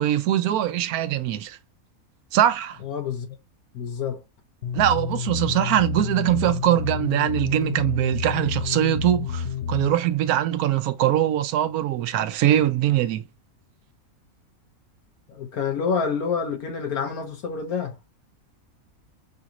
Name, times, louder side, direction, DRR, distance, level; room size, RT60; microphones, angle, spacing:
voice 1, 0.0-1.6 2.3-2.8 4.7-13.2, right 12 dB, 85° right, 1.1 m, -22 dB
voice 2, 2.8-3.3 3.7-4.2 15.3-17.9, left 6 dB, 85° left, 1.6 m, -28 dB
sound 1, 4.6-10.0, left 7 dB, 55° left, 1.0 m, -30 dB
5.6 x 2.4 x 2.9 m
omnidirectional pair, 1.5 m